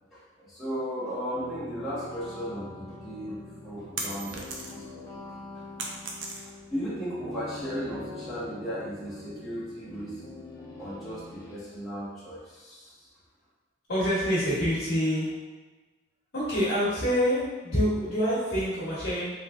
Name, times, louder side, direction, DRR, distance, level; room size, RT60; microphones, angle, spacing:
voice 1, 0.1-5.0 6.4-10.2 10.8-12.9, equal, ahead, -13 dB, 1.3 m, -36 dB
sound 1, 1.3-11.6, left 2 dB, 15° left, 0.4 m, -44 dB
sound 2, 3.2-5.0 5.3-6.8, right 3 dB, 75° right, 0.5 m, -37 dB
voice 2, 13.9-15.3 16.3-19.3, equal, 60° left, -11 dB, 0.9 m, -26 dB
3.2 x 3.1 x 2.4 m, 1.3 s
head